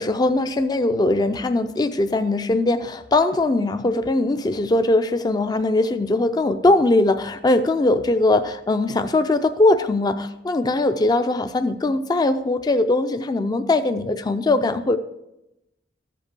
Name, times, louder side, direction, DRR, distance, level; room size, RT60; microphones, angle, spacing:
voice 1, 0.0-15.0, left 2 dB, 20° left, 9 dB, 0.4 m, -20 dB
14.0 x 5.4 x 6.7 m, 0.90 s
head